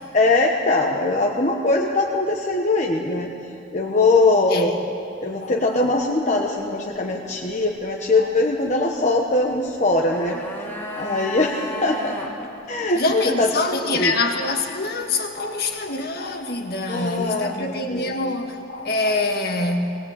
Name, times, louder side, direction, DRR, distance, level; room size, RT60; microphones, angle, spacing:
voice 1, 0.1-3.3 3.7-4.7 5.2-10.4 11.0-12.2 12.7-13.5 13.9-14.1 16.9-18.2, left 2 dB, 35° left, -1 dB, 1.2 m, -21 dB
voice 2, 5.4-5.8 8.2-8.3 12.4-12.5 13.0-20.0, left 2 dB, 50° left, 4 dB, 1.8 m, -25 dB
sound 1, 9.7-12.3 12.6-12.7, left 1 dB, 10° left, 2.1 m, -34 dB
20.0 x 19.5 x 8.3 m, 2.7 s
head